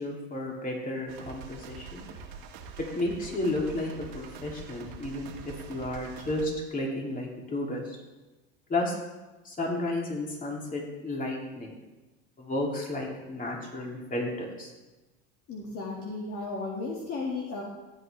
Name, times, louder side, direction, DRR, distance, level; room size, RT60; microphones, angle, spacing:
voice 1, 0.0-2.1 2.9-8.0 8.7-9.0 9.4-11.7 12.4-14.7, left 1 dB, 25° left, -1 dB, 3.1 m, -32 dB
sound 1, 1.1-6.5, right 5 dB, 75° right, 2.0 m, -45 dB
voice 2, 15.5-17.6, left 3 dB, 45° left, -2 dB, 2.3 m, -34 dB
15.0 x 8.7 x 3.5 m, 1.1 s
supercardioid pair, 100°, 32 cm